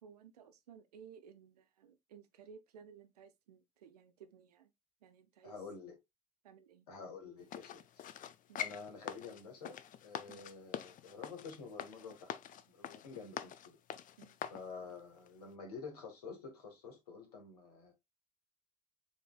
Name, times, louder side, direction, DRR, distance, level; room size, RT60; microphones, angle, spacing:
voice 1, 0.0-4.7 5.0-5.5 6.4-6.9 8.5-8.7 10.3-10.5 14.2-14.4, right 7 dB, 80° right, 0.6 m, -57 dB
voice 2, 5.4-5.9 6.9-8.0 8.6-12.4 12.7-13.8 14.5-17.9, left 5 dB, 75° left, 1.5 m, -49 dB
sound 1, 7.5-14.6 15.2-15.3, left 10 dB, 45° left, 0.5 m, -45 dB
7.1 x 3.2 x 2.3 m
figure-of-eight pair, 50°, 20 cm